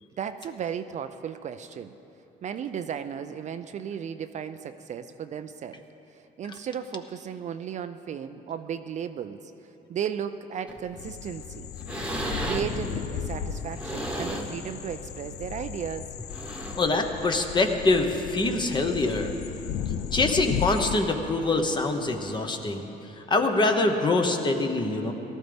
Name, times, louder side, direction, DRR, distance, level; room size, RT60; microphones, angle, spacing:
voice 1, 0.2-1.9 2.4-5.8 6.1-9.5 9.9-11.7 12.4-16.1, right 8 dB, 45° right, 9 dB, 0.4 m, -35 dB
sound 1, 10.7-11.0 11.4-11.5 11.8-12.9 13.6-14.6 15.1-15.3 16.2-17.0 18.0-18.1, right 1 dB, 5° right, 1.3 m, -34 dB
sound 2, 11.0-21.0, left 8 dB, 75° left, 0.6 m, -35 dB
voice 2, 16.8-19.3 20.1-25.1, left 2 dB, 25° left, 5 dB, 1.1 m, -24 dB
18.0 x 13.0 x 3.5 m, 3.0 s
cardioid pair, 110°, 17 cm